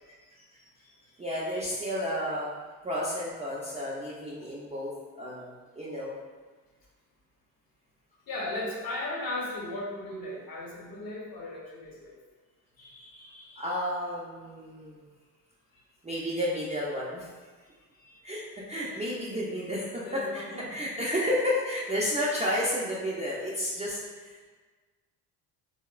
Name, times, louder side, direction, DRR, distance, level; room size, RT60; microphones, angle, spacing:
voice 1, 1.2-2.5 2.8-4.9 5.2-5.5 5.8-6.1 13.6-15.0 16.0-17.3 18.2-20.4 20.7-24.5, equal, 15° right, -8 dB, 0.5 m, -31 dB
voice 2, 8.3-12.2 12.8-13.7 17.9-18.2 20.0-20.7, left 2 dB, 45° left, -3 dB, 0.9 m, -37 dB
2.8 x 2.1 x 2.3 m, 1.4 s
hypercardioid pair, 55°, 49 cm